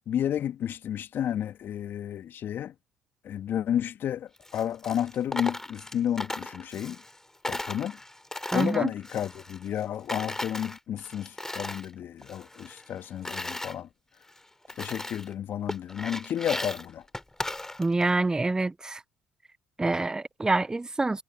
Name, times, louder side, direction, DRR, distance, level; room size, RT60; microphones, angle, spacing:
voice 1, 0.1-2.7 3.2-7.0 7.5-8.0 8.5-13.9 14.8-17.0, left 10 dB, 55° left, 2.2 m, -31 dB
Coin (dropping), 4.4-7.2 7.4-9.8 10.1-11.9 12.2-13.7 14.3-14.4 14.7-15.3 15.7-18.1, left 1 dB, 10° left, 3.6 m, -37 dB
voice 2, 8.5-8.9 17.8-19.0 19.8-21.2, right 2 dB, 15° right, 0.5 m, -26 dB
hypercardioid pair, 55°, 4 cm